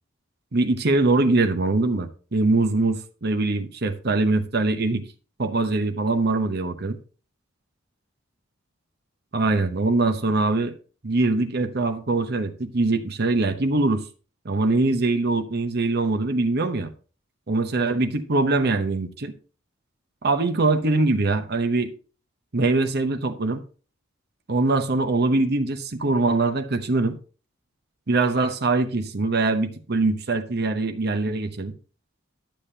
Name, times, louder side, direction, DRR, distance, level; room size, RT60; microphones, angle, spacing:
voice 1, 0.5-5.0 5.4-7.0 9.3-10.7 11.0-14.0 14.4-16.9 17.5-19.3 20.2-21.9 22.5-23.6 24.5-27.2 28.1-31.7, right 3 dB, 55° right, 9 dB, 0.9 m, -23 dB
12.0 x 7.2 x 2.8 m, 0.38 s
head